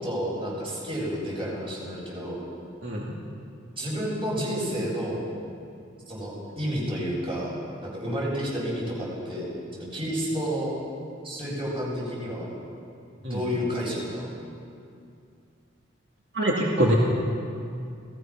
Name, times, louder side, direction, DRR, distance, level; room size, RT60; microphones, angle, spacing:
voice 1, 0.0-2.4 3.8-5.2 6.1-7.6 7.8-10.7 11.2-12.5 13.2-14.3, equal, 30° right, -4 dB, 7.9 m, -30 dB
voice 2, 16.3-17.0, right 1 dB, 65° right, -3 dB, 2.7 m, -24 dB
29.5 x 18.5 x 6.1 m, 2.4 s
head